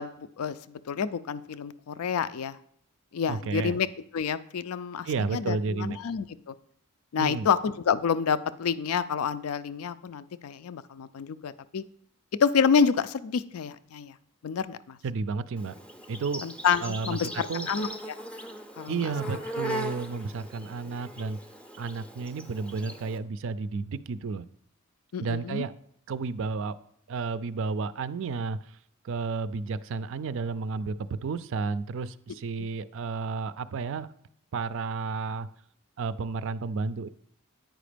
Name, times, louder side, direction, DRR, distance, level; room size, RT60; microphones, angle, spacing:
voice 1, 0.0-2.6 3.1-3.9 4.1-6.5 7.1-11.8 12.4-14.1 14.4-15.0 16.4-18.2 18.8-19.0 25.1-25.7 32.6-32.7, left 6 dB, 80° left, 15 dB, 0.4 m, -28 dB
voice 2, 3.3-3.8 5.0-6.0 7.2-7.5 15.0-15.7 16.1-16.4 16.8-17.2 17.5-17.7 18.9-21.4 21.8-24.5 25.2-25.7 26.1-26.7 27.1-28.7 29.0-34.1 34.5-35.5 36.0-37.1, right 4 dB, 60° right, 15 dB, 0.4 m, -32 dB
Insect, 15.6-23.2, right 1 dB, 5° left, 0.5 m, -39 dB
9.1 x 5.0 x 5.0 m, 0.67 s
head